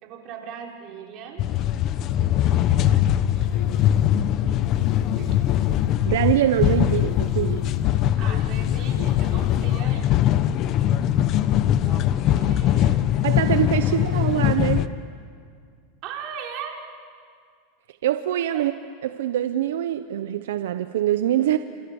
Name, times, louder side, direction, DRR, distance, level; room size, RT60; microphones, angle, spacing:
voice 1, 0.0-1.5 2.4-3.1 3.3-4.0 5.1-5.5 7.9-10.4 11.9-13.1 16.0-16.8 18.5-18.7, right 7 dB, 45° right, 0 dB, 5.2 m, -39 dB
sound 1, 1.4-14.9, left 11 dB, 45° left, 1.1 m, -21 dB
sound 2, 3.4-4.1 4.6-6.0 6.6-7.9 8.5-9.8, left 8 dB, 80° left, 3.8 m, -35 dB
voice 2, 6.0-7.7 13.2-14.8 18.0-18.7 19.0-21.6, right 12 dB, 85° right, 10 dB, 0.9 m, -23 dB
29.5 x 27.0 x 7.2 m, 2.2 s
supercardioid pair, 125°, 0 cm